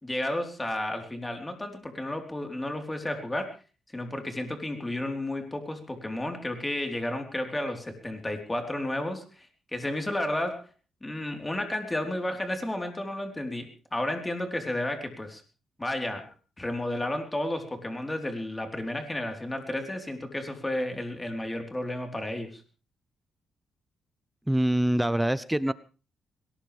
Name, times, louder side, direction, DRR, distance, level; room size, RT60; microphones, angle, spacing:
voice 1, 0.0-3.6 3.9-9.5 9.7-10.7 11.0-15.4 15.8-22.6, left 1 dB, 15° left, 4 dB, 4.0 m, -32 dB
voice 2, 24.5-25.7, right 1 dB, 5° right, 16 dB, 0.7 m, -24 dB
21.5 x 18.5 x 3.5 m, 0.34 s
cardioid pair, 100°, 0 cm